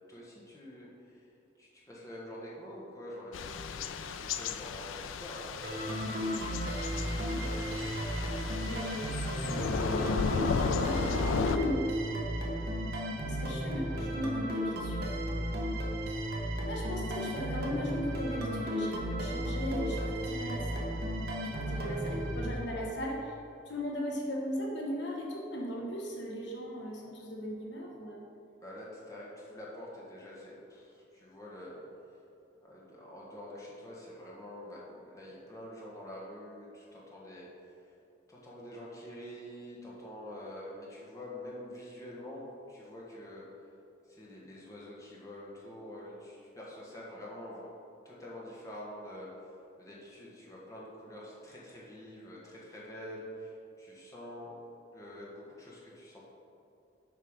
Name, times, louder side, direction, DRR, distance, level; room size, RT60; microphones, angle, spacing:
voice 1, 0.1-1.3 1.6-5.5 21.6-22.0 28.6-31.8 32.6-37.9 38.3-43.5 44.1-47.7 48.0-49.3 49.8-54.6 54.9-56.2, left 1 dB, 15° left, -5 dB, 1.4 m, -46 dB
Thunder / Rain, 3.3-11.6, left 5 dB, 80° left, 0.4 m, -34 dB
sound 1, 5.6-23.2, equal, 50° right, 1.0 m, -34 dB
voice 2, 7.3-7.9 8.3-9.1 9.4-11.8 13.2-15.2 16.7-20.9 21.5-23.3 23.7-28.2, equal, 60° left, -1 dB, 1.0 m, -37 dB
7.2 x 5.4 x 5.2 m, 2.7 s
head